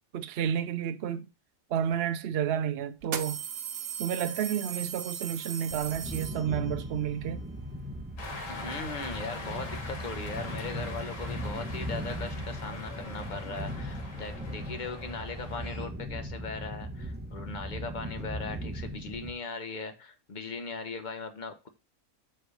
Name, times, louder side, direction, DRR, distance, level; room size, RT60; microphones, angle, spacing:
voice 1, 0.1-1.3 1.7-3.4 4.0-7.4, right 9 dB, 60° right, 0.7 m, -31 dB
sound 1, 1.9-2.0 3.0-6.8, right 8 dB, 80° right, 1.2 m, -37 dB
sound 2, 5.7-19.3, equal, 10° right, 0.7 m, -38 dB
Cheering, 8.2-15.9, left 2 dB, 65° left, 1.9 m, -43 dB
voice 2, 8.5-21.7, left 4 dB, 35° left, 1.1 m, -39 dB
7.8 x 3.5 x 6.4 m
omnidirectional pair, 1.5 m